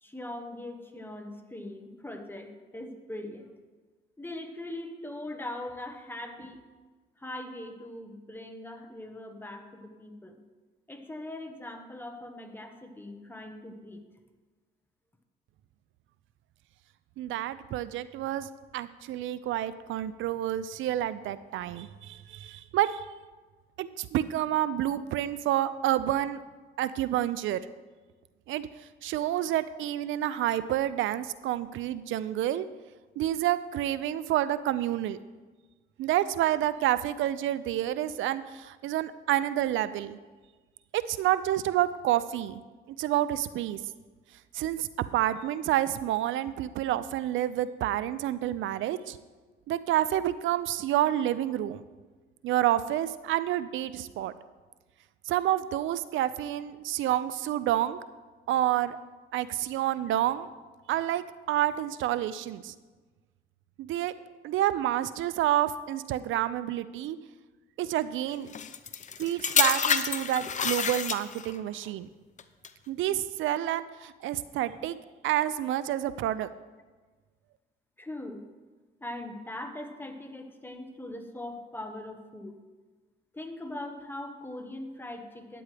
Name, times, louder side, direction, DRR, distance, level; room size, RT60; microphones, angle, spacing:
voice 1, 0.0-3.5 4.2-6.6 7.2-10.4 10.9-14.0 78.0-78.4 79.0-82.6 83.3-85.6, left 1 dB, 10° left, 5 dB, 1.3 m, -41 dB
voice 2, 17.2-23.1 23.8-26.4 26.8-27.6 28.5-32.7 33.2-35.2 36.0-40.2 40.9-42.6 43.0-43.8 44.5-49.2 49.7-51.8 52.4-54.3 55.3-58.0 58.5-59.0 59.3-60.5 60.9-62.7 63.8-64.1 64.4-67.2 67.8-68.6 69.2-72.1 72.9-75.0 75.2-76.5, right 12 dB, 80° right, 15 dB, 0.4 m, -29 dB
sound 1, 68.5-71.6 72.4-72.7, left 7 dB, 40° left, 0.6 m, -28 dB
12.0 x 9.4 x 3.4 m, 1.3 s
cardioid pair, 90°, 20 cm